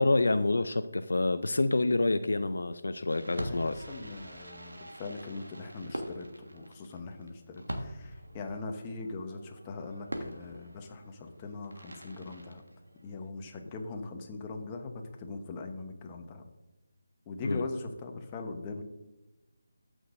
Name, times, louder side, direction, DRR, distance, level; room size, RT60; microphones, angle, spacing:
voice 1, 0.0-3.8 17.4-17.7, left 2 dB, 70° left, 10 dB, 0.5 m, -27 dB
Fireworks, 3.1-13.3, equal, 85° right, 1.5 m, -44 dB
voice 2, 3.2-12.6 13.0-16.4 17.3-18.8, left 3 dB, 20° left, 3 dB, 1.0 m, -41 dB
14.5 x 6.3 x 2.6 m, 1.0 s
figure-of-eight pair, 155°, 0 cm